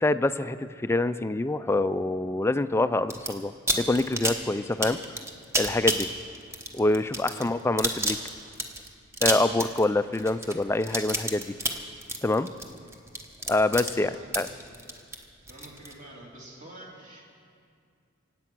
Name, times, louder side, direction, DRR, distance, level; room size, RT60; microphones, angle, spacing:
voice 1, 0.0-5.2 5.6-6.1 6.7-8.2 9.2-11.5 12.2-12.5 13.5-14.5, left 2 dB, 10° left, 12 dB, 0.3 m, -26 dB
sound 1, 3.1-3.3 3.7-15.9, right 1 dB, 15° right, 1.0 m, -30 dB
voice 2, 7.3-7.6 12.8-12.9 14.1-14.3 14.6-14.8 15.5-17.2, right 1 dB, 40° right, -3 dB, 3.1 m, -48 dB
25.5 x 8.5 x 6.1 m, 2.3 s
head